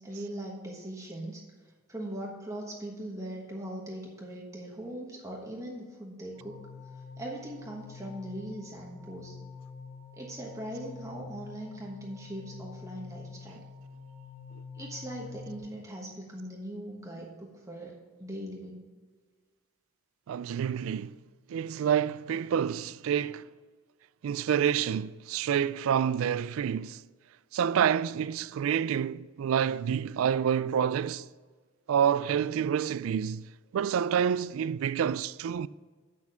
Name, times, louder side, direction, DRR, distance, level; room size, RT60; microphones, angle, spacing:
voice 1, 0.0-1.4 1.9-6.6 7.2-9.4 10.2-13.6 14.7-18.9, right 1 dB, 15° right, 1.2 m, -40 dB
sound 1, 6.3-15.6, left 5 dB, 70° left, 1.5 m, -47 dB
voice 2, 20.3-21.2 21.5-23.5 24.2-27.0 27.5-31.3 31.9-35.7, right 8 dB, 75° right, 0.3 m, -28 dB
8.4 x 6.5 x 5.5 m
head